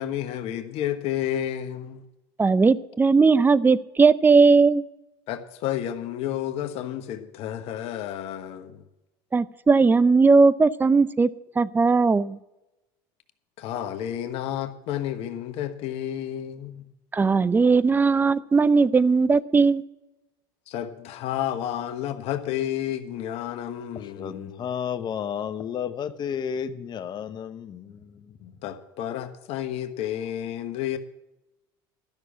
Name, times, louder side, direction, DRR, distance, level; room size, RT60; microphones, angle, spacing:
voice 1, 0.0-2.0 5.3-8.8 13.6-16.8 20.7-24.7 28.4-31.0, left 11 dB, 60° left, 9 dB, 1.2 m, -31 dB
voice 2, 2.4-4.8 9.3-11.3 11.6-12.4 17.1-19.8, right 4 dB, 15° right, 18 dB, 0.5 m, -18 dB
voice 3, 24.2-27.9, left 8 dB, 40° left, 10 dB, 0.9 m, -31 dB
12.5 x 6.4 x 8.4 m, 0.95 s
supercardioid pair, 95°, 12 cm